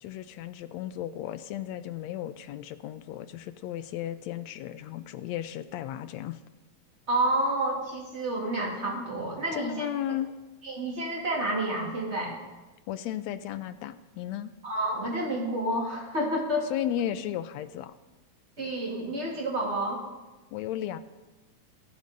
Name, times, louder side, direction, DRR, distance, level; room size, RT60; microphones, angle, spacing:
voice 1, 0.0-6.4 9.5-10.3 12.9-14.5 16.7-17.9 20.5-21.0, left 11 dB, 75° left, 12 dB, 1.8 m, -34 dB
voice 2, 7.1-9.9 10.6-12.4 14.6-16.7 18.6-20.0, right 1 dB, 20° right, -1 dB, 3.1 m, -29 dB
15.5 x 15.5 x 5.3 m, 1.1 s
omnidirectional pair, 3.4 m